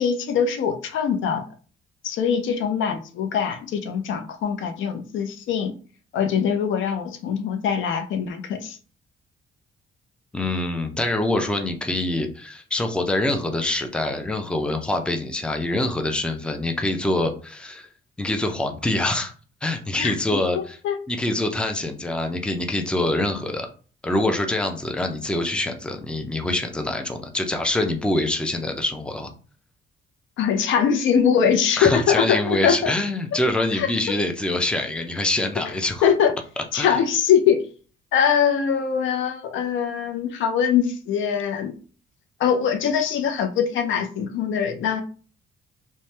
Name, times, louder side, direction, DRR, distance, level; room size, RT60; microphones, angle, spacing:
voice 1, 0.0-1.4 2.0-5.7 6.1-8.8 20.0-21.0 30.4-32.9 33.7-34.2 36.0-36.3 36.7-37.6 38.1-41.7 42.4-45.0, left 7 dB, 75° left, 7 dB, 0.5 m, -22 dB
voice 2, 10.3-17.9 18.2-19.3 19.6-20.8 21.1-23.7 24.0-29.3 31.8-36.1 36.8-37.0, left 1 dB, 5° left, 5 dB, 0.5 m, -25 dB
2.7 x 2.2 x 3.2 m, 0.39 s
cardioid pair, 90°, 20 cm